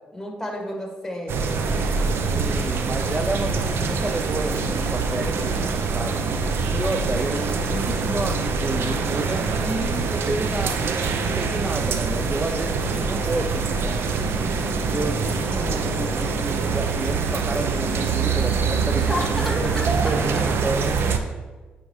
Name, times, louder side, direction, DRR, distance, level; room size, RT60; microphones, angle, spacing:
voice 1, 0.1-2.3 18.9-20.2, left 1 dB, 5° left, 0 dB, 2.0 m, -32 dB
sound 1, 1.3-21.2, right 4 dB, 70° right, 0.6 m, -24 dB
voice 2, 2.3-14.5 14.9-21.2, right 2 dB, 25° right, 4 dB, 0.5 m, -31 dB
9.1 x 4.9 x 3.2 m, 1.3 s
supercardioid pair, 55°, 4 cm